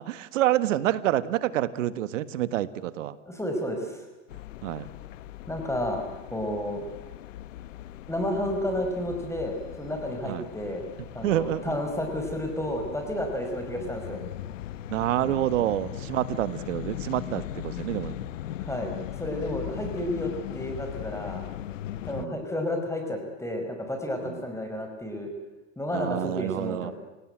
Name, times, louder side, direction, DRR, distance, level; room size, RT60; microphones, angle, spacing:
voice 1, 0.0-3.2 4.6-4.9 10.2-10.5 11.2-11.8 14.9-18.2 22.1-22.4 24.2-24.4 25.9-26.9, right 13 dB, 80° right, 15 dB, 1.6 m, -28 dB
voice 2, 3.2-4.0 5.5-6.0 6.3-6.8 8.1-10.9 11.1-14.2 18.6-21.4 22.0-25.3 25.8-26.9, left 1 dB, 5° left, 4 dB, 5.1 m, -31 dB
sound 1, 4.3-22.3, left 12 dB, 85° left, 1.2 m, -39 dB
30.0 x 18.0 x 9.2 m, 1.1 s
hypercardioid pair, 100°, 37 cm